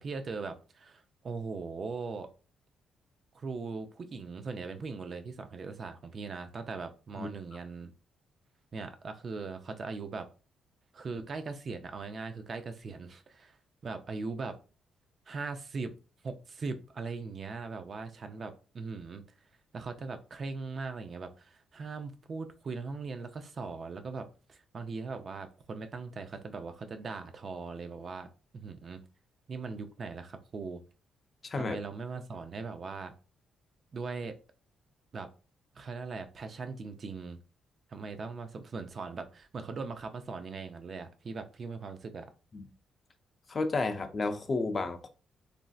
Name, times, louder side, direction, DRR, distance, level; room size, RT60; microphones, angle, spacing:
voice 1, 0.0-2.3 3.3-7.9 8.7-10.3 10.9-13.6 13.8-14.6 15.3-15.9 16.2-19.2 19.7-28.3 28.5-29.0 29.5-30.8 31.6-33.1 33.9-34.3 35.1-35.3 35.7-37.4 37.9-42.3, right 4 dB, 40° right, 0.4 m, -40 dB
voice 2, 31.4-31.8 42.5-42.7 43.5-45.1, left 3 dB, 30° left, 0.4 m, -31 dB
3.1 x 2.6 x 2.3 m
cardioid pair, 125°, 0 cm